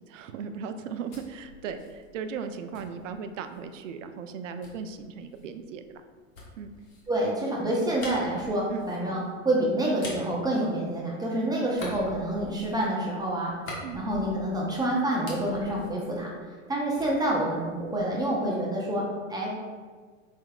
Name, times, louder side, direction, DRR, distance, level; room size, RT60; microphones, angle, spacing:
voice 1, 0.1-6.0 6.6-6.7 8.7-8.9 13.8-14.0, right 6 dB, 65° right, 9 dB, 0.5 m, -37 dB
sound 1, 0.7-3.7 4.6-11.3 11.7-14.7 15.0-16.7 17.0-18.3, left 2 dB, 85° left, 1.2 m, -46 dB
voice 2, 7.1-13.5 13.9-16.3 16.7-19.0 19.3-19.5, right 1 dB, 10° right, -3 dB, 0.5 m, -27 dB
4.5 x 3.5 x 2.2 m, 1.5 s
hypercardioid pair, 100°, 40 cm